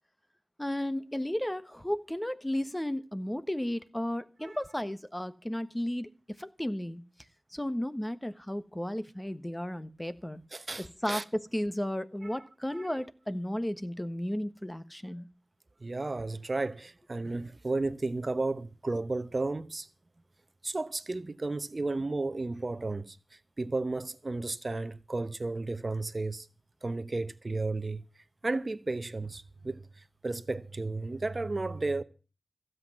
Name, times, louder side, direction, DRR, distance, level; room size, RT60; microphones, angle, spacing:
voice 1, 0.6-6.1 6.4-7.0 7.5-10.4 10.8-15.2, left 1 dB, 15° left, 1.2 m, -34 dB
voice 2, 10.5-11.2 12.3-12.4 12.7-12.9 15.8-19.9 20.6-23.2 23.6-26.5 26.8-28.0 28.4-29.8 30.2-32.0, right 2 dB, 45° right, 0.9 m, -33 dB
16.0 x 7.9 x 7.2 m
cardioid pair, 50°, 0 cm